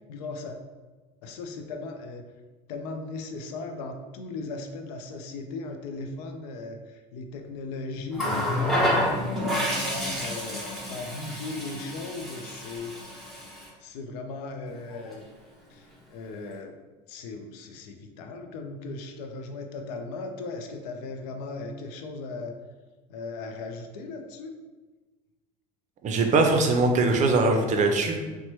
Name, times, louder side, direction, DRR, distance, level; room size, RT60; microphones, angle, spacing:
voice 1, 0.1-0.6 1.2-2.2 2.7-8.9 9.2-12.9 13.6-15.2 15.7-16.8 17.1-22.6 23.1-24.5, left 3 dB, 80° left, 5 dB, 0.4 m, -37 dB
Water tap faucet, 8.1-13.7 14.9-15.1, left 1 dB, ahead, 0.9 m, -29 dB
voice 2, 26.0-28.2, right 3 dB, 35° right, 4 dB, 0.5 m, -21 dB
2.9 x 2.1 x 2.9 m, 1.3 s
hypercardioid pair, 85°, 20 cm